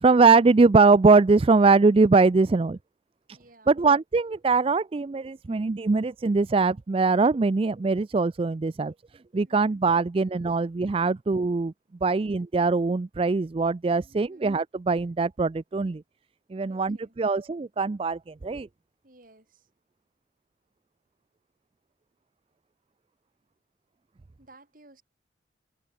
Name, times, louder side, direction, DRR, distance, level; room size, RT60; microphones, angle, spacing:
voice 1, 0.0-2.8 3.3-3.4 3.7-8.9 9.3-11.7 12.0-16.0 16.5-18.7, right 4 dB, 30° right, 0.4 m, -22 dB
voice 2, 3.3-3.8 9.4-9.8 14.0-14.5 16.7-17.2 19.0-19.7 24.4-25.0, right 2 dB, 50° right, 4.8 m, -56 dB
head